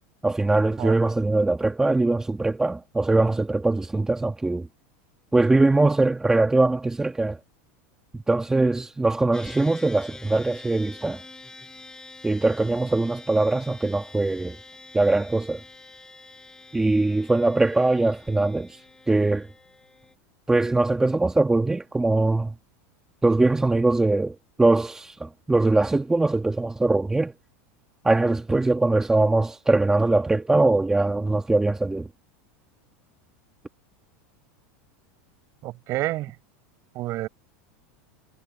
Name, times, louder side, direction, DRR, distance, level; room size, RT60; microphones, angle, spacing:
voice 1, 0.2-4.7 5.3-7.4 8.1-11.2 12.2-14.6 14.9-15.6 16.7-18.8 19.1-19.5 20.5-22.5 23.2-27.3 28.0-32.1, right 2 dB, 10° right, 1.7 m, -22 dB
sound 1, 9.3-20.2, left 3 dB, 10° left, 6.6 m, -46 dB
voice 2, 35.6-36.3 36.9-37.3, right 17 dB, 45° right, 4.7 m, -29 dB
supercardioid pair, 135°, 7 cm